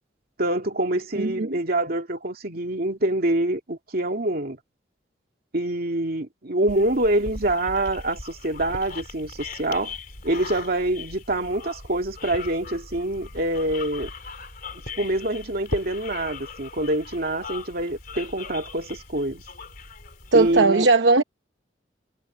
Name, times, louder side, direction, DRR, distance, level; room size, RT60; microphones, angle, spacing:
voice 1, 0.4-4.6 5.5-10.0 10.2-14.1 14.7-19.4 20.3-20.9, right 1 dB, 55° right, 2.5 m, -25 dB
voice 2, 1.2-1.6 20.3-21.2, right 3 dB, 75° right, 0.9 m, -18 dB
sound 1, 6.7-20.6, left 3 dB, 50° left, 3.6 m, -39 dB
head